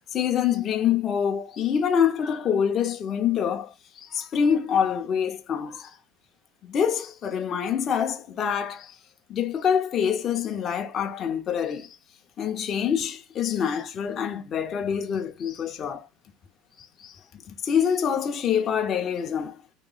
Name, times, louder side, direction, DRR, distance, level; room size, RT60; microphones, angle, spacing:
voice 1, 0.1-6.0 6.6-9.0 9.3-12.0 12.4-16.1 16.8-17.2 17.5-19.6, left 8 dB, 30° left, 0.6 m, -26 dB
3.1 x 2.9 x 3.8 m
cardioid pair, 160°, 0 cm